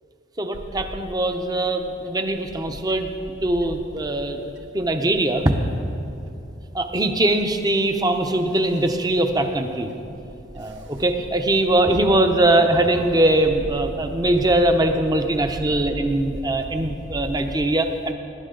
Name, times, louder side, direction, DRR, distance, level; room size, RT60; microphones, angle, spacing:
voice 1, 0.4-3.1 3.4-5.6 6.7-9.9 10.5-18.1, right 1 dB, 20° right, 6 dB, 0.7 m, -21 dB
Bird / Wind, 0.5-17.5, right 1 dB, 80° right, 0.7 m, -40 dB
18.0 x 11.0 x 3.8 m, 2.7 s
head